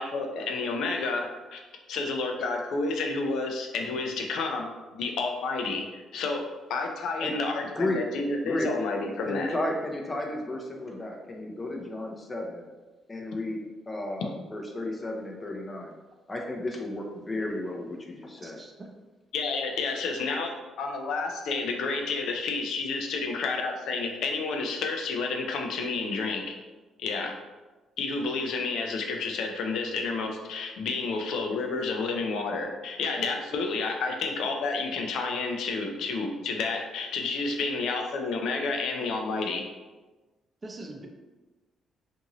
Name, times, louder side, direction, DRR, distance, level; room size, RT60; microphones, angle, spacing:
voice 1, 0.0-1.6 1.9-9.5 19.3-26.6 27.0-27.3 28.0-39.6, left 3 dB, 80° left, 3 dB, 0.4 m, -30 dB
voice 2, 7.6-8.1 8.4-8.7 9.2-12.7 13.1-13.6 13.9-15.9 16.3-18.6, left 1 dB, 25° left, 1 dB, 0.6 m, -33 dB
voice 3, 18.4-18.9 40.6-41.1, right 2 dB, 30° right, 2 dB, 0.5 m, -42 dB
2.6 x 2.5 x 2.9 m, 1.2 s
cardioid pair, 90°, 0 cm